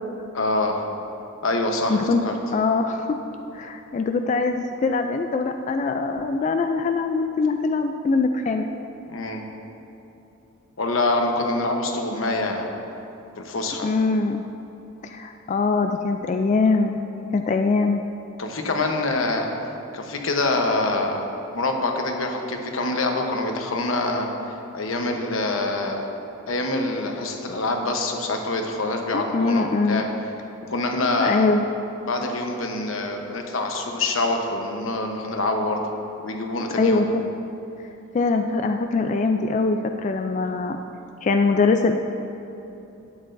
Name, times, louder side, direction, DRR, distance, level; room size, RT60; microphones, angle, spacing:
voice 1, 0.3-0.8 1.4-2.3 9.1-9.4 10.8-12.7 13.4-13.9 18.4-19.5 19.9-21.2 21.5-26.0 26.5-30.0 30.7-31.5 32.1-35.8 36.2-37.0, left 2 dB, 90° left, 3 dB, 0.9 m, -25 dB
voice 2, 1.9-2.2 2.5-3.2 3.5-8.7 13.8-14.4 15.0-17.0 17.3-18.0 29.1-30.0 31.2-31.6 36.8-37.2 38.1-40.8 41.2-41.9, left 4 dB, 35° left, 5 dB, 0.3 m, -22 dB
11.5 x 8.8 x 2.6 m, 3.0 s
head